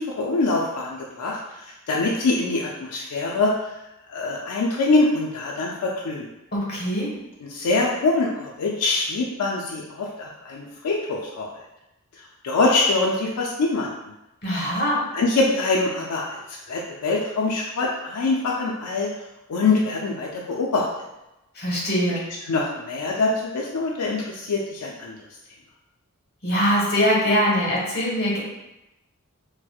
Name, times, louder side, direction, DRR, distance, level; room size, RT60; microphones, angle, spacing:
voice 1, 0.0-3.5 4.1-6.3 7.4-11.5 12.4-14.1 15.1-19.1 19.5-20.9 22.5-25.2, left 3 dB, 90° left, -2 dB, 0.4 m, -24 dB
voice 2, 6.5-7.2 14.4-15.0 21.6-22.3 26.4-28.4, equal, 45° left, -4 dB, 1.0 m, -22 dB
4.2 x 2.1 x 2.3 m, 0.93 s
head